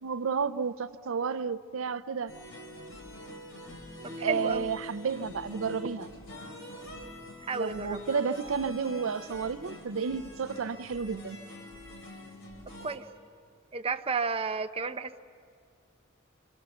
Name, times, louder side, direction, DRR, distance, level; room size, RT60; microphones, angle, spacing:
voice 1, 0.0-2.3 4.2-6.1 7.5-11.4, right 5 dB, 75° right, 0.5 m, -31 dB
sound 1, 2.3-13.0, left 1 dB, 75° left, 4.0 m, -44 dB
voice 2, 4.0-4.7 7.4-8.0 12.8-13.1 13.7-15.2, right 4 dB, 30° right, 0.6 m, -32 dB
26.5 x 25.5 x 7.0 m
head